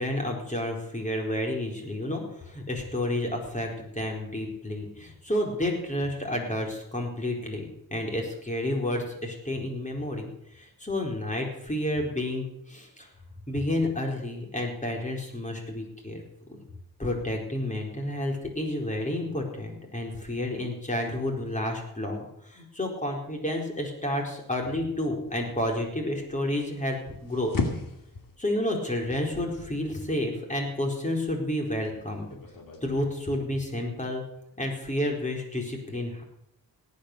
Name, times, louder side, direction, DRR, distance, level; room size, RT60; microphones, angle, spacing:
voice 1, 0.0-13.1 13.5-16.2 16.5-16.6 17.0-27.5 28.4-32.3 32.8-34.2 34.6-36.2, left 1 dB, 20° left, 1 dB, 4.4 m, -30 dB
sound 1, 25.3-32.8, left 3 dB, 70° left, 2.4 m, -38 dB
17.5 x 9.6 x 6.8 m, 0.78 s
cardioid pair, 80°, 35 cm